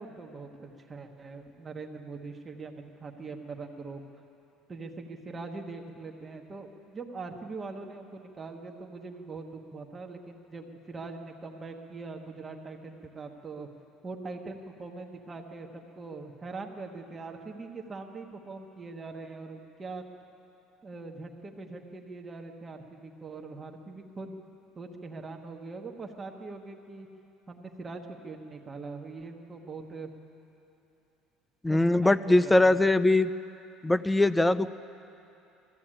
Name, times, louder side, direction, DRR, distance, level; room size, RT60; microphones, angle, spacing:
voice 1, 0.0-4.1 4.7-13.7 14.0-20.0 20.8-24.4 24.8-27.1 27.5-30.1 31.7-32.8, right 3 dB, 15° right, 3 dB, 1.2 m, -42 dB
voice 2, 31.6-33.3 33.8-34.7, left 2 dB, 5° left, 15 dB, 0.4 m, -22 dB
20.5 x 14.5 x 8.9 m, 2.8 s
cardioid pair, 165°, 0 cm